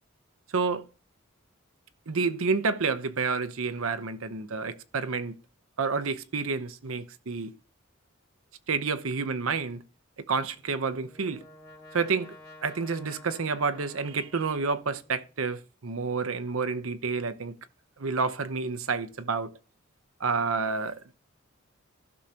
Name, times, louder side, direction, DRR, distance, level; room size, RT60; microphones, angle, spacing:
voice 1, 0.5-0.8 2.1-5.3 5.8-7.5 8.7-9.8 10.3-11.4 11.9-12.3 12.6-17.5 18.0-19.5 20.2-21.0, right 4 dB, 80° right, 0.8 m, -29 dB
Brass instrument, 10.5-15.3, left 2 dB, 20° left, 1.7 m, -51 dB
15.5 x 6.4 x 2.9 m
head